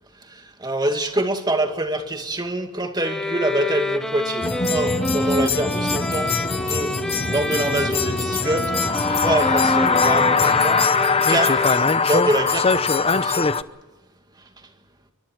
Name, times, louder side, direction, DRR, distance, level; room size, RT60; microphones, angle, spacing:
voice 1, 0.6-6.4 6.6-7.0 7.3-8.7 9.1-10.8 11.3-11.7 12.0-13.5, right 1 dB, 20° right, 5 dB, 2.2 m, -25 dB
sound 1, 3.0-12.2, equal, 5° left, 1.6 m, -27 dB
sound 2, 4.4-13.6, left 4 dB, 25° left, 0.7 m, -21 dB
28.5 x 23.5 x 4.6 m, 1.1 s
head